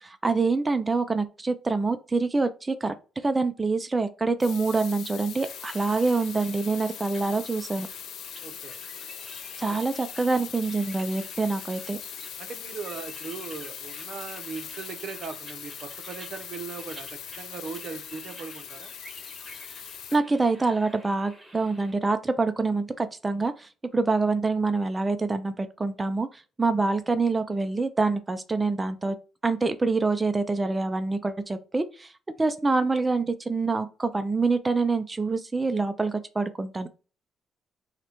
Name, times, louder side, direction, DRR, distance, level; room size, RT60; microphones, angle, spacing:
voice 1, 0.0-2.9 3.2-7.9 9.6-12.0 20.1-26.3 26.6-29.2 29.4-32.1 32.4-36.9, right 3 dB, 20° right, 0.4 m, -26 dB
sound 1, 4.4-20.2, left 10 dB, 75° left, 0.3 m, -41 dB
sound 2, 5.4-21.9, right 1 dB, 5° right, 1.7 m, -49 dB
voice 2, 8.4-8.8 9.7-9.8 12.4-18.9, right 5 dB, 60° right, 0.6 m, -39 dB
5.7 x 2.2 x 2.9 m
cardioid pair, 90°, 0 cm